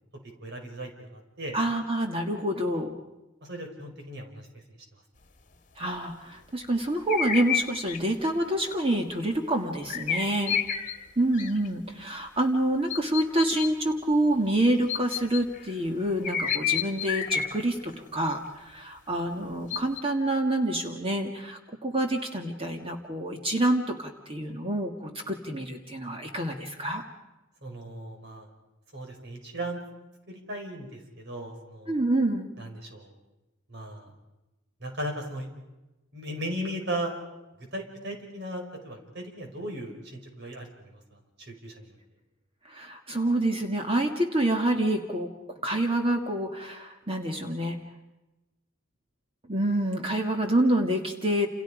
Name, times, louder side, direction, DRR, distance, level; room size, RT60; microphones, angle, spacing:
voice 1, 0.4-1.6 3.4-4.5 27.6-28.5 28.9-29.8 30.3-32.0 32.6-33.1 33.7-34.1 34.8-35.5 36.1-37.1 37.7-42.0, right 1 dB, 60° right, 2 dB, 5.3 m, -37 dB
voice 2, 1.5-2.9 5.8-10.6 11.2-27.0 31.9-32.5 42.7-45.3 45.6-47.8 49.5-51.5, right 1 dB, 30° right, 3 dB, 1.9 m, -27 dB
sound 1, 7.1-8.0 8.5-8.7 9.9-11.0 11.3-11.7 12.9-13.7 14.9-15.7 16.2-17.9 18.2-18.3 19.7-20.0, left 8 dB, 40° left, 1.8 m, -29 dB
29.0 x 29.0 x 5.1 m, 1.0 s
head